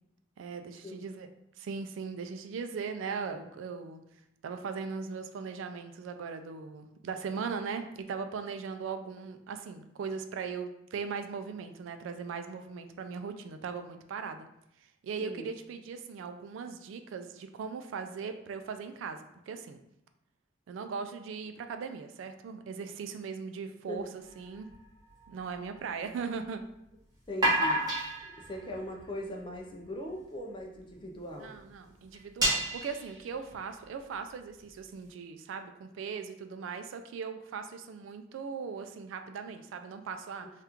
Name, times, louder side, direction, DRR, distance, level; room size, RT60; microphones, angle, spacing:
voice 1, 0.4-1.3 1.6-4.0 4.4-14.5 14.8-19.8 20.7-24.7 25.3-26.6 31.4-40.5, right 5 dB, 75° right, 7 dB, 0.3 m, -39 dB
voice 2, 15.2-15.5 23.9-24.1 27.3-27.8 28.2-31.6, equal, 25° left, 1 dB, 0.4 m, -40 dB
sound 1, 24.2-25.8 27.2-30.1 30.8-30.9 31.1-31.3 31.6-31.7 32.1-33.6, right 1 dB, 20° right, 1.0 m, -32 dB
2.9 x 2.4 x 3.4 m, 0.80 s
head